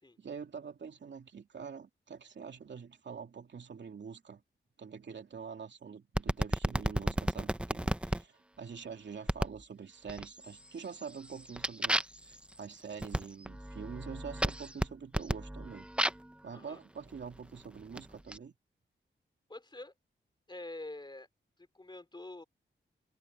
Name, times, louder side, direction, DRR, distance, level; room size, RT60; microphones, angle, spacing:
voice 1, 0.2-4.4 4.8-12.0 12.3-15.9 16.4-18.5, right 6 dB, 65° right, 2.7 m, -45 dB
sound 1, 6.2-8.2 9.3-9.6 10.1-10.6 11.0-16.3 17.1-18.4, right 1 dB, 5° right, 0.8 m, -34 dB
voice 2, 19.5-19.9 20.5-21.3 21.7-22.4, left 2 dB, 25° left, 4.0 m, -46 dB
wide cardioid pair, 100°, 20 cm